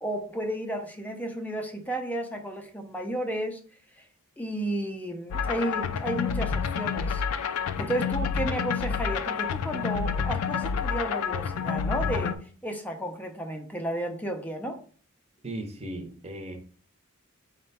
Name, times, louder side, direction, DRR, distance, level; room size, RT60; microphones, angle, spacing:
voice 1, 0.0-3.6 4.4-7.2 7.8-14.8, right 1 dB, 10° left, 5 dB, 0.4 m, -32 dB
sound 1, 5.3-12.4, left 6 dB, 85° left, 0.3 m, -29 dB
voice 2, 15.4-16.6, right 1 dB, 30° right, 3 dB, 0.7 m, -37 dB
4.3 x 2.2 x 4.0 m, 0.44 s
head